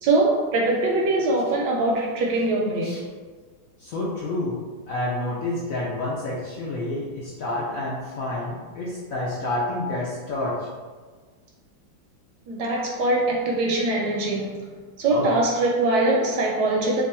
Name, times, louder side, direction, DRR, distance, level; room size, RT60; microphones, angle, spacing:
voice 1, 0.0-3.0 12.5-14.6 15.0-17.0, right 2 dB, 75° right, -2 dB, 1.0 m, -22 dB
voice 2, 3.8-4.6 4.9-10.7 15.1-15.3, left 2 dB, 75° left, -5 dB, 0.8 m, -29 dB
3.0 x 2.4 x 4.1 m, 1.5 s
omnidirectional pair, 2.0 m